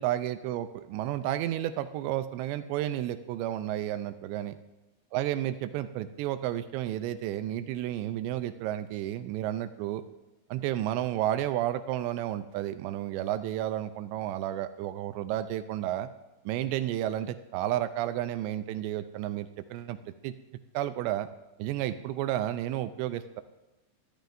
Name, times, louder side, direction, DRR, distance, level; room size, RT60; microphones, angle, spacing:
voice 1, 0.0-4.5 5.1-10.0 10.5-16.1 16.5-20.0 20.2-20.3 20.7-21.3 21.6-23.4, right 12 dB, 80° right, 11 dB, 2.6 m, -32 dB
23.5 x 13.5 x 2.6 m, 1.1 s
omnidirectional pair, 5.4 m